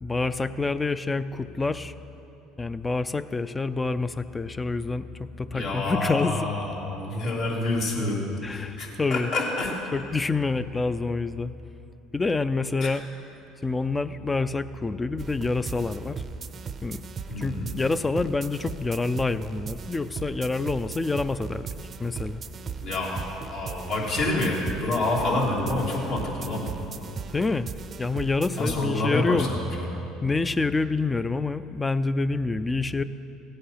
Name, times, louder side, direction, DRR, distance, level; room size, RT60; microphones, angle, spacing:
voice 1, 0.0-1.9 2.6-6.5 8.4-9.3 9.9-11.6 12.1-13.0 13.6-16.2 16.8-17.0 17.4-21.7 22.0-22.4 27.3-27.7 28.0-29.5 30.2-33.0, left 3 dB, 20° left, 13 dB, 0.5 m, -27 dB
voice 2, 5.5-9.7 12.8-12.9 17.3-17.7 22.8-26.7 28.6-29.9, left 2 dB, 65° left, -3 dB, 2.9 m, -28 dB
sound 1, 15.2-28.9, right 6 dB, 40° right, 0.6 m, -38 dB
15.5 x 8.6 x 5.7 m, 3.0 s
supercardioid pair, 80°, 0 cm